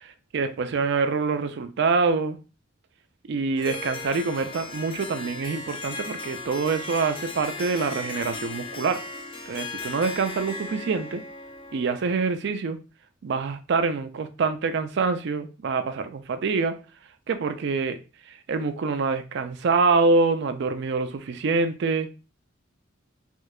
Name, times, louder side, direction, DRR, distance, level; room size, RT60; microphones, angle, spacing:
voice 1, 0.0-2.4 3.3-9.0 9.5-11.2 11.7-12.8 13.2-16.8 17.3-18.0 18.5-22.1, right 4 dB, 55° right, 9 dB, 0.4 m, -25 dB
Harp, 3.6-12.3, left 3 dB, 25° left, 0.3 m, -37 dB
4.4 x 2.2 x 2.3 m, 0.33 s
head